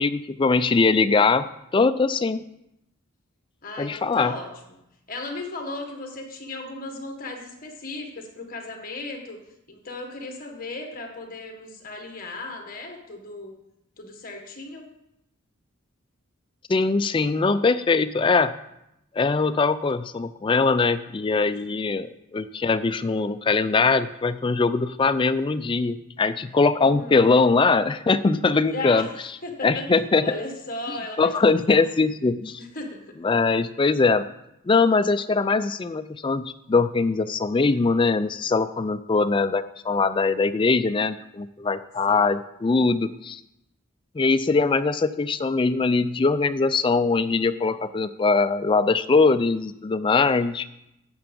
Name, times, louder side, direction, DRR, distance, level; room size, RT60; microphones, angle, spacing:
voice 1, 0.0-2.4 3.8-4.3 16.7-18.5 19.1-29.1 29.6-30.2 31.2-32.6 33.2-34.2 34.7-43.4 44.1-50.7, left 4 dB, 25° left, 12 dB, 0.3 m, -22 dB
voice 2, 3.6-4.5 5.1-9.4 9.7-13.5 14.0-14.9 26.8-27.2 28.7-29.1 29.4-29.9 30.2-31.8 32.6-33.2 42.1-42.3, left 2 dB, 40° left, 3 dB, 1.5 m, -36 dB
8.8 x 6.9 x 5.3 m, 0.84 s
head